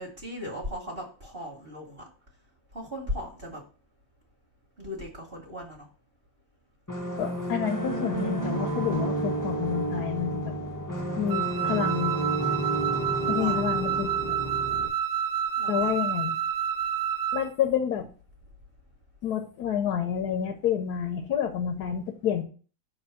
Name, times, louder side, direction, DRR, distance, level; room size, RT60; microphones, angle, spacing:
voice 1, 0.0-2.0 2.7-3.6 4.8-5.9 13.2-13.8 15.6-15.9, left 1 dB, 30° right, -2 dB, 1.4 m, -38 dB
sound 1, 6.9-14.9, right 2 dB, 30° left, 0.3 m, -31 dB
voice 2, 7.2-10.5 11.2-12.2 13.3-14.1 15.7-16.4 17.3-18.1 19.2-22.4, left 9 dB, 65° left, 4 dB, 1.1 m, -29 dB
Wind instrument woodwind instrument, 11.3-17.5, right 9 dB, 75° right, 1.2 m, -29 dB
5.5 x 3.5 x 5.7 m, 0.39 s
omnidirectional pair, 2.2 m